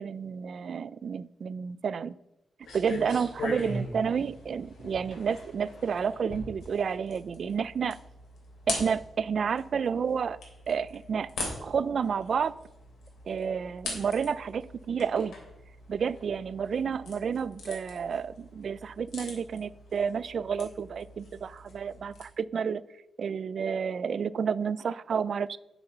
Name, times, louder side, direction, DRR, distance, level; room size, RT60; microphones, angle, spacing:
voice 1, 0.0-2.1 2.7-8.0 8.7-10.4 10.7-11.3 11.6-12.5 13.3-15.3 15.9-22.8 23.2-25.6, right 6 dB, 50° right, 18 dB, 0.3 m, -30 dB
sound 1, 2.6-22.2, left 2 dB, 75° left, 3.4 m, -42 dB
9.9 x 6.8 x 5.6 m, 0.91 s
wide cardioid pair, 175°, 0 cm